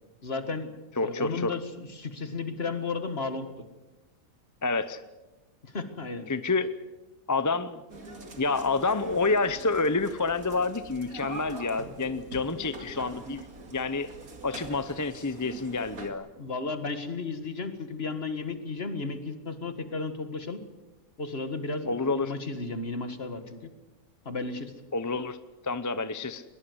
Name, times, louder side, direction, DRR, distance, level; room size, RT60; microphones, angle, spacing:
voice 1, 0.2-0.7 1.0-3.5 5.6-6.3 16.4-20.6 21.2-23.7 24.3-24.7, left 3 dB, 45° left, 9 dB, 2.0 m, -34 dB
voice 2, 1.0-1.5 4.6-5.0 6.3-6.7 7.3-14.1 14.4-16.3 21.9-22.3 24.9-25.4 25.6-26.4, left 3 dB, 20° left, 13 dB, 0.5 m, -28 dB
sound 1, 7.9-16.1, right 3 dB, 80° right, 3.0 m, -44 dB
21.5 x 20.5 x 8.0 m, 1.1 s
omnidirectional pair, 1.5 m